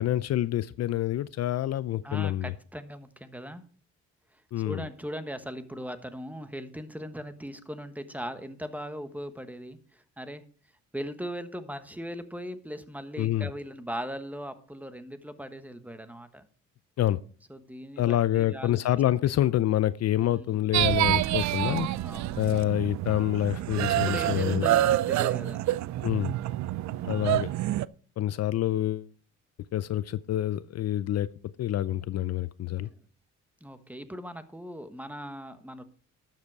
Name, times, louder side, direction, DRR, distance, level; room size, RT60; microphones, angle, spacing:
voice 1, 0.0-2.5 4.5-4.8 13.2-13.5 17.0-17.2 18.0-21.9 22.4-24.7 26.0-26.3 27.0-27.5 28.2-29.1 29.7-31.3 31.6-32.9, left 13 dB, 60° left, 17 dB, 0.5 m, -27 dB
voice 2, 2.0-3.6 4.3-10.4 10.9-16.5 17.5-18.8 20.2-20.6 21.6-22.4 23.9-25.8 26.7-27.2 32.8-32.9 33.6-35.8, equal, 5° right, 10 dB, 1.2 m, -39 dB
sound 1, 20.7-27.9, right 14 dB, 65° right, 0.5 m, -27 dB
12.0 x 7.6 x 4.7 m, 0.44 s
cardioid pair, 90°, 30 cm